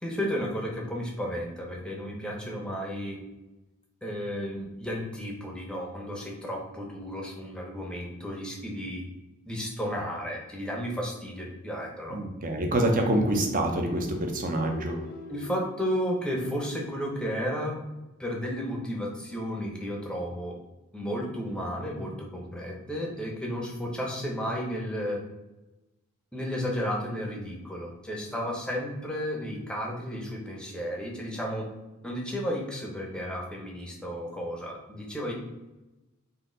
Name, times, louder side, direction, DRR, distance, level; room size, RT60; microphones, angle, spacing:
voice 1, 0.0-3.2 4.0-9.0 9.5-12.2 15.3-17.8 18.2-20.6 20.9-25.2 26.3-31.7 32.0-35.3, equal, 5° left, -1 dB, 0.7 m, -33 dB
voice 2, 12.1-15.0, right 1 dB, 40° right, 3 dB, 0.7 m, -26 dB
sound 1, 13.1-17.0, left 2 dB, 45° left, 0.4 m, -44 dB
4.1 x 2.7 x 3.8 m, 1.0 s
head